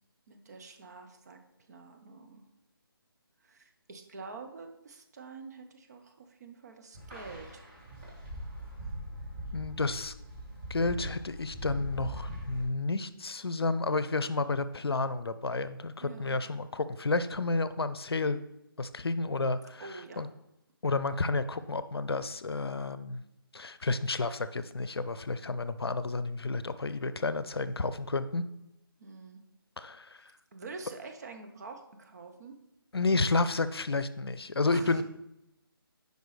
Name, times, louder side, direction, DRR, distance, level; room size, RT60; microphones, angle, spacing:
voice 1, 0.3-2.5 3.4-7.7 16.0-16.4 19.8-20.2 29.0-29.4 30.2-32.6 34.7-35.0, right 4 dB, 45° right, 5 dB, 0.8 m, -46 dB
sound 1, 6.9-12.7, equal, 25° right, 1.9 m, -41 dB
voice 2, 9.5-10.1 10.7-18.4 18.8-19.8 20.2-20.3 20.8-23.2 23.5-28.4 29.8-30.2 32.9-35.0, left 3 dB, 80° left, 14 dB, 0.5 m, -31 dB
7.9 x 5.3 x 3.2 m, 0.89 s
figure-of-eight pair, 155°, 13 cm